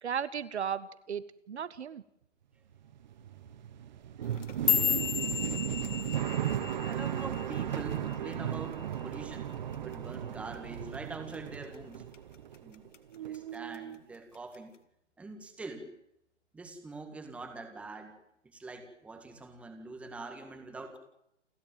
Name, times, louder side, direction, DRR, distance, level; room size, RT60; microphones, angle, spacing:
voice 1, 0.0-2.0, right 8 dB, 60° right, 15 dB, 1.4 m, -35 dB
sound 1, 2.8-12.9 13.1-14.0, right 10 dB, 40° right, 1.5 m, -36 dB
sound 2, 4.2-8.6 8.9-9.3 9.7-10.1 10.5-10.7 11.3-11.7 12.1-13.0 13.3-13.8 14.5-14.6, left 8 dB, 75° left, 2.4 m, -33 dB
voice 2, 6.8-12.1 12.6-12.9 13.2-14.7 15.2-15.9 16.5-18.2 18.4-21.0, right 3 dB, 5° right, 6 dB, 1.8 m, -44 dB
29.0 x 13.5 x 9.2 m, 0.79 s
hypercardioid pair, 160°, 37 cm